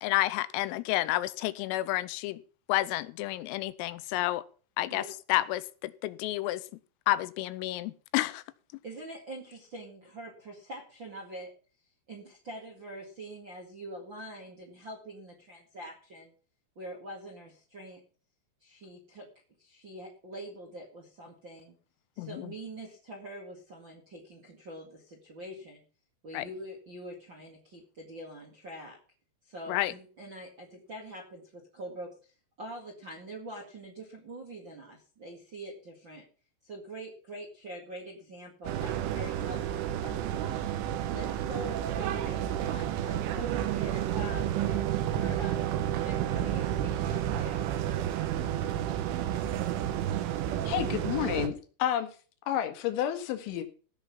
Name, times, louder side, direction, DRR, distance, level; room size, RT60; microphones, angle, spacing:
voice 1, 0.0-2.4 2.7-4.4 4.8-5.0 5.3-6.6 7.1-8.4 22.2-22.5 26.3-26.5 29.7-29.9, left 16 dB, 90° left, 16 dB, 3.4 m, -30 dB
voice 2, 8.8-11.5 12.1-16.3 16.7-18.0 18.6-19.3 19.6-21.8 22.1-25.8 26.2-29.0 29.4-32.3 32.6-36.2 36.6-40.6 41.1-45.6 46.0-47.7, right 1 dB, 50° right, 0 dB, 1.4 m, -44 dB
sound 1, 38.7-51.5, right 11 dB, 75° right, 3.5 m, -31 dB
voice 3, 50.7-52.1 52.5-53.6, left 11 dB, 70° left, 6 dB, 3.8 m, -30 dB
16.0 x 5.9 x 7.0 m, 0.39 s
omnidirectional pair, 5.9 m